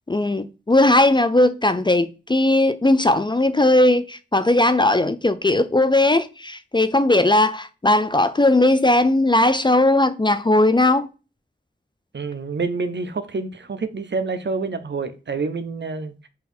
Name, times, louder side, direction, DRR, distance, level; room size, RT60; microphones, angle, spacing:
voice 1, 0.1-11.1, left 2 dB, 20° left, 0.4 m, -18 dB
voice 2, 12.1-16.3, right 4 dB, 60° right, 0.6 m, -27 dB
3.9 x 2.6 x 4.1 m
wide cardioid pair, 40°, 21 cm